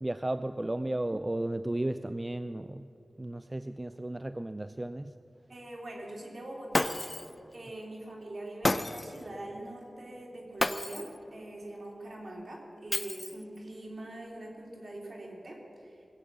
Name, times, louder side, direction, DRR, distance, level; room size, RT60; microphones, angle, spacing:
voice 1, 0.0-2.9 3.2-5.1, right 1 dB, 25° right, 11 dB, 0.4 m, -34 dB
voice 2, 5.5-7.0 7.5-16.1, right 1 dB, 60° right, -1 dB, 3.2 m, -43 dB
Shatter, 6.7-7.3 8.6-9.2 10.6-11.2 12.9-13.6, left 2 dB, 30° left, 0.5 m, -31 dB
20.5 x 8.1 x 7.4 m, 2.7 s
wide cardioid pair, 75°, 0 cm